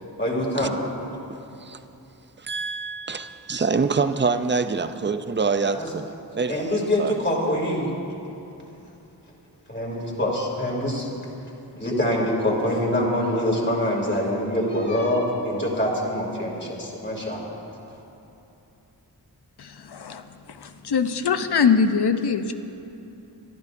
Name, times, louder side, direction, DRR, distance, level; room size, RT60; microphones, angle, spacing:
voice 1, 0.2-0.7 5.7-5.9 6.5-7.9 9.7-11.1 11.7-17.4, left 1 dB, 25° left, 2.8 m, -24 dB
voice 2, 2.4-7.1, right 4 dB, 30° right, 0.5 m, -26 dB
voice 3, 19.6-22.5, left 6 dB, 75° left, 0.7 m, -23 dB
24.0 x 12.5 x 2.6 m
wide cardioid pair, 100°, 40 cm